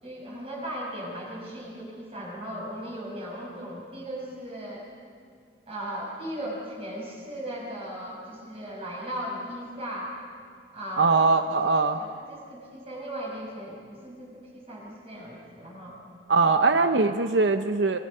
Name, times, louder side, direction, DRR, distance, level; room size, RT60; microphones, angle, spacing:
voice 1, 0.0-4.9 5.7-10.1 10.7-11.5 11.9-16.0 16.7-16.8, equal, 35° right, -3 dB, 6.2 m, -37 dB
voice 2, 11.0-12.0 16.3-18.0, right 3 dB, 85° right, 8 dB, 0.7 m, -21 dB
27.0 x 23.0 x 5.6 m, 2.2 s
head